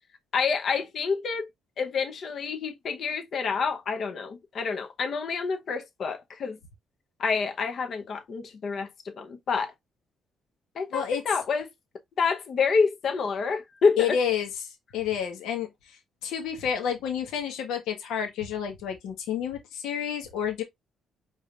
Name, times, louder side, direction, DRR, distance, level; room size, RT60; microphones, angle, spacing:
voice 1, 0.3-1.5 1.8-6.6 7.2-9.7 10.7-11.7 12.2-14.2, left 5 dB, 60° left, 0.9 m, -28 dB
voice 2, 10.9-11.2 14.0-16.0 16.2-20.6, left 8 dB, 90° left, 1.4 m, -30 dB
4.9 x 3.8 x 2.4 m
cardioid pair, 90°, 0 cm